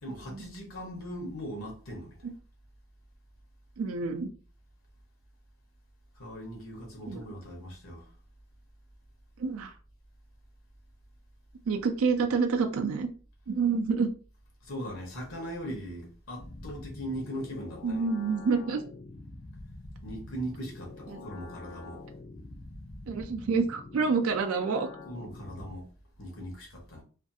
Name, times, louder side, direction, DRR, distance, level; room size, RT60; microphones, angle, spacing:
voice 1, 0.0-2.2 6.2-8.1 14.6-18.0 20.0-22.0 25.1-25.9 26.2-27.0, equal, 80° left, 0.9 m, -39 dB
voice 2, 3.8-4.3 7.1-7.2 9.4-9.7 11.7-13.1 13.5-14.1 17.8-18.8 21.1-21.2 23.1-24.9, right 5 dB, 85° right, 0.4 m, -28 dB
sound 1, 16.4-25.8, left 2 dB, 55° left, 0.5 m, -46 dB
2.5 x 2.3 x 2.6 m
head